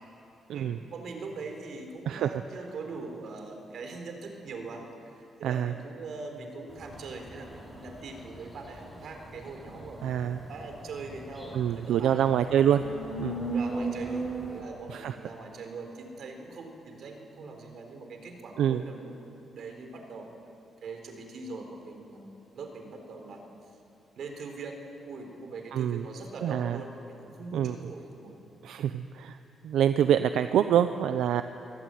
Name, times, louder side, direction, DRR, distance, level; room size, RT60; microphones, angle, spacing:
voice 1, 0.5-12.3 13.4-20.3 20.8-23.5 24.2-24.8 25.0-28.4, right 3 dB, 65° right, 4 dB, 4.1 m, -42 dB
voice 2, 5.4-5.7 10.0-10.4 11.5-12.8 13.2-13.3 14.9-15.1 18.6-18.8 25.7-26.0 26.4-26.8 27.5-27.8 28.6-29.4 29.6-31.4, right 10 dB, 90° right, 9 dB, 0.7 m, -25 dB
sound 1, 6.7-14.6, right 2 dB, 10° right, 7.5 m, -38 dB
24.0 x 18.0 x 9.2 m, 2.8 s
cardioid pair, 130°, 0 cm